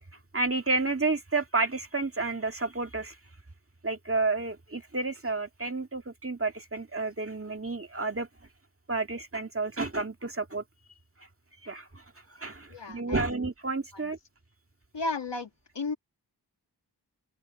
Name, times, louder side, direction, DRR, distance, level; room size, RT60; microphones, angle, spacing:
voice 1, 0.3-3.2 3.8-8.3 8.9-10.6 11.6-12.0 12.3-14.2, right 3 dB, 30° right, 2.0 m, -30 dB
voice 2, 12.7-13.3 13.9-14.1 14.9-15.5 15.8-16.0, left 3 dB, 85° left, 2.0 m, -33 dB
open air
wide cardioid pair, 65°, 42 cm